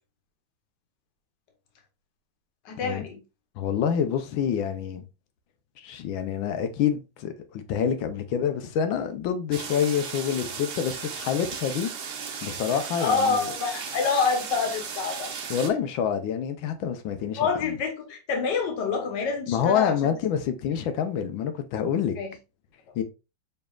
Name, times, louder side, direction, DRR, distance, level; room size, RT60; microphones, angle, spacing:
voice 1, 2.6-3.2 13.0-15.3 17.3-20.1 22.2-22.3, left 5 dB, 65° left, 1.7 m, -27 dB
voice 2, 3.6-5.0 5.8-11.9 12.4-13.5 15.5-17.7 19.5-22.2 22.9-23.0, left 8 dB, 85° left, 1.5 m, -27 dB
sound 1, 9.5-15.7, right 6 dB, 55° right, 0.8 m, -36 dB
5.5 x 4.0 x 2.4 m
omnidirectional pair, 2.1 m